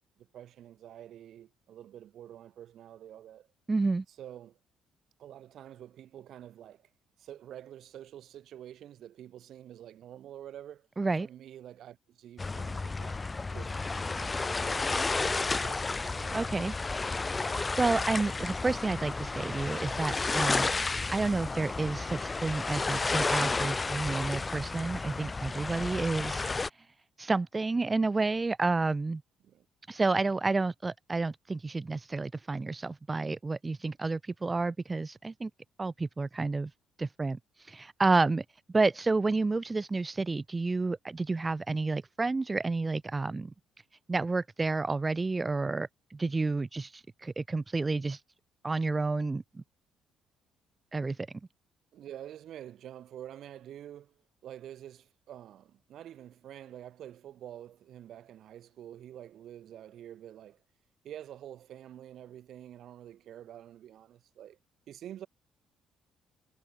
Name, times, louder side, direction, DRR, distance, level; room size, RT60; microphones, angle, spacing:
voice 1, 0.0-3.5 4.1-4.6 5.2-6.9 7.2-10.9 11.2-13.2 13.5-16.4 29.4-29.7 51.9-60.6 61.0-64.6 64.9-65.3, right 11 dB, 65° right, 7.2 m, -48 dB
voice 2, 3.7-4.0 11.0-11.3 16.3-16.7 17.4-26.4 27.2-29.2 29.9-35.5 35.8-36.7 37.0-38.4 38.7-43.5 44.1-48.2 48.6-49.6 50.9-51.3, right 3 dB, 25° right, 0.9 m, -30 dB
sound 1, 12.4-26.7, left 3 dB, 25° left, 0.9 m, -32 dB
supercardioid pair, 80°, 0 cm